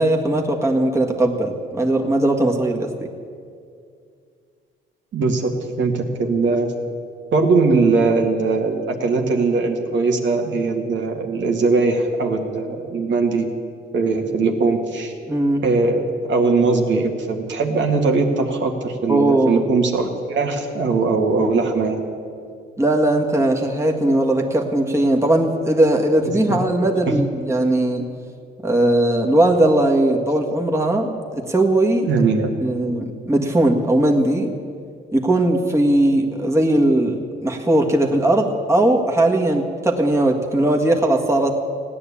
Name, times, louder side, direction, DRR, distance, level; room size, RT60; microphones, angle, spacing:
voice 1, 0.0-3.1 15.3-15.6 19.1-19.6 22.8-28.1 28.6-32.1 32.6-34.5 35.1-41.6, right 1 dB, 15° right, 1 dB, 1.7 m, -19 dB
voice 2, 5.1-5.5 5.8-6.7 7.3-13.5 13.9-15.1 15.6-22.1 27.1-27.2 32.0-32.6, right 3 dB, 65° right, 2 dB, 1.9 m, -20 dB
16.5 x 9.9 x 8.6 m, 2.3 s
cardioid pair, 90°, 20 cm